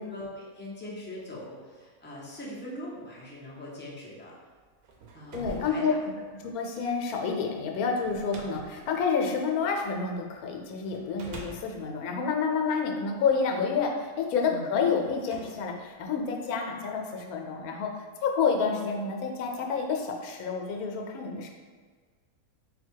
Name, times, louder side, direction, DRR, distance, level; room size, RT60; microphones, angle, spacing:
voice 1, 0.0-4.3 5.1-5.8 6.1-6.2 14.5-14.7, left 1 dB, 15° left, -5 dB, 0.4 m, -41 dB
sound 1, 4.6-10.2 10.8-13.3 14.1-14.2 14.9-16.6, right 3 dB, 80° right, 1.1 m, -47 dB
voice 2, 5.3-5.9 6.4-21.5, left 5 dB, 80° left, 2 dB, 1.1 m, -29 dB
4.0 x 2.2 x 4.5 m, 1.6 s
omnidirectional pair, 1.5 m